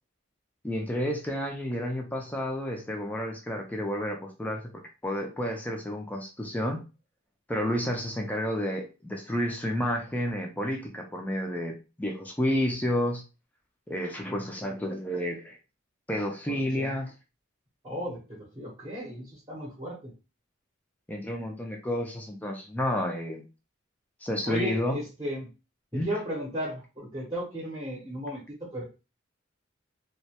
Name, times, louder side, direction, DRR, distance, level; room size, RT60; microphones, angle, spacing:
voice 1, 0.6-4.7 5.0-6.8 7.5-13.2 13.9-15.6 16.1-17.1 21.1-23.4 24.2-25.0 25.9-26.1, left 1 dB, 10° left, 2 dB, 0.3 m, -30 dB
voice 2, 16.5-16.9 17.8-20.1 24.5-25.5 25.9-28.8, equal, 20° right, -3 dB, 0.7 m, -35 dB
2.2 x 2.0 x 2.8 m, 0.31 s
head